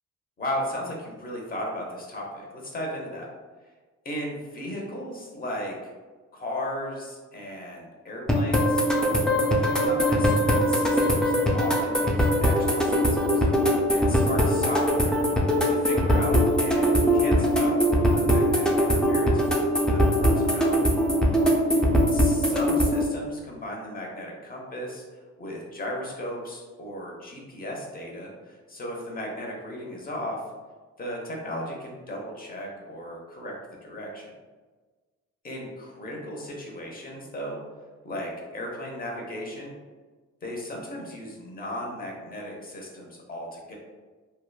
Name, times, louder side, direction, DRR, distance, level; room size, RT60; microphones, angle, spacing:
voice 1, 0.4-3.3 4.0-5.9 6.3-8.8 9.6-10.3 10.6-13.5 13.9-15.2 15.6-17.8 18.1-20.8 22.1-30.4 31.0-33.5 33.8-34.3 35.4-37.6 38.0-39.7 40.4-43.7, equal, 30° left, -1 dB, 0.8 m, -36 dB
sound 1, 8.3-23.1, equal, 5° left, 0.3 m, -22 dB
2.9 x 2.2 x 2.2 m, 1.4 s
cardioid pair, 90°, 30 cm